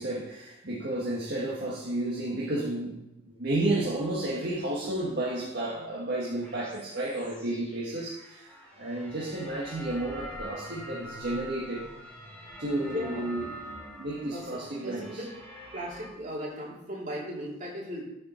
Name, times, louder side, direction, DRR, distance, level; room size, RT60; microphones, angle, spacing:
voice 1, 0.0-11.9 12.6-13.6 14.0-15.2, right 1 dB, 55° right, -6 dB, 1.6 m, -32 dB
sound 1, 6.4-16.1, equal, 5° left, 3.1 m, -45 dB
voice 2, 12.8-13.3 14.3-14.4 14.8-15.2 15.7-18.0, equal, 40° right, -4 dB, 3.0 m, -37 dB
14.0 x 5.4 x 4.4 m, 0.89 s
head